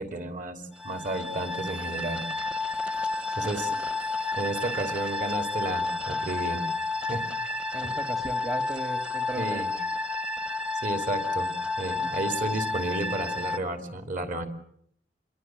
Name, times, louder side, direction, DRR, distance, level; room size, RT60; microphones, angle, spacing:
voice 1, 0.0-2.2 3.4-3.7 4.3-6.6 7.1-7.3 9.3-9.7 10.8-11.5 11.8-14.5, right 2 dB, 50° right, 9 dB, 3.3 m, -32 dB
sound 1, 0.8-13.6, left 3 dB, 5° right, 1.1 m, -31 dB
voice 2, 3.3-3.7 7.7-9.8, right 1 dB, 20° right, 9 dB, 1.5 m, -37 dB
27.0 x 22.5 x 7.8 m, 0.68 s
head